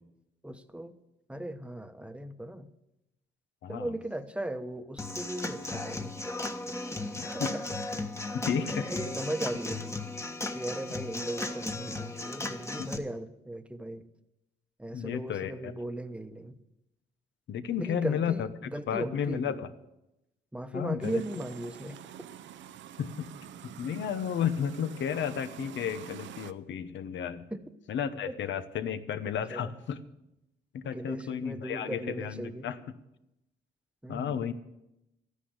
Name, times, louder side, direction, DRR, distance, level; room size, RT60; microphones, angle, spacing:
voice 1, 0.4-0.9 1.3-2.7 3.7-6.1 7.2-7.6 8.6-10.0 10.5-14.0 14.8-16.5 17.8-19.6 20.5-22.0 27.5-27.6 28.3-28.4 29.5-29.7 30.9-32.7 34.0-34.4, right 1 dB, 5° right, 10 dB, 1.1 m, -37 dB
voice 2, 3.6-3.9 7.1-7.5 8.3-8.9 12.8-12.9 14.9-15.7 17.5-19.7 20.7-21.2 23.0-23.3 23.8-27.5 27.9-30.0 30.7-32.8 34.1-34.5, left 8 dB, 70° left, 11 dB, 1.1 m, -33 dB
Human voice / Acoustic guitar / Drum, 5.0-13.0, left 2 dB, 15° left, 1.3 m, -36 dB
sound 1, 21.0-26.5, right 10 dB, 70° right, 0.7 m, -46 dB
13.0 x 10.0 x 8.1 m, 0.89 s
cardioid pair, 90°, 20 cm